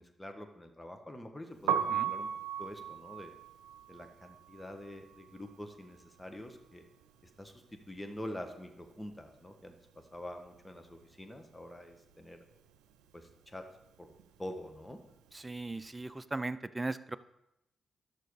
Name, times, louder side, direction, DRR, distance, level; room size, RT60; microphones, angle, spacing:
voice 1, 0.0-2.3 2.6-3.4 3.9-6.9 7.4-12.4 13.1-13.6 14.0-14.1 14.4-15.0, left 1 dB, 15° left, 5 dB, 1.6 m, -46 dB
Piano, 1.5-7.5 7.7-9.3 9.6-16.0, right 9 dB, 85° right, 0.6 m, -39 dB
voice 2, 15.3-17.2, right 2 dB, 25° right, 14 dB, 0.6 m, -38 dB
11.5 x 6.6 x 4.9 m, 0.86 s
hypercardioid pair, 40°, 0 cm